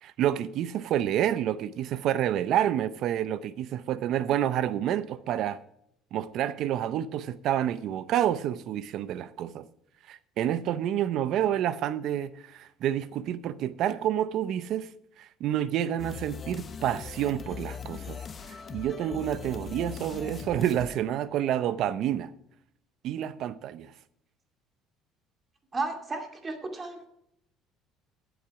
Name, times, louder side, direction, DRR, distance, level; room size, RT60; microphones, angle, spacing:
voice 1, 0.0-5.6 6.1-9.7 10.1-14.9 15.2-18.2 18.5-22.3 23.0-23.9, right 11 dB, 60° right, 0.6 m, -29 dB
sound 1, 16.0-21.7, left 6 dB, 30° left, 0.9 m, -41 dB
voice 2, 25.7-27.1, right 3 dB, 25° right, 2.4 m, -33 dB
15.0 x 8.1 x 4.8 m
cardioid pair, 130°, 0 cm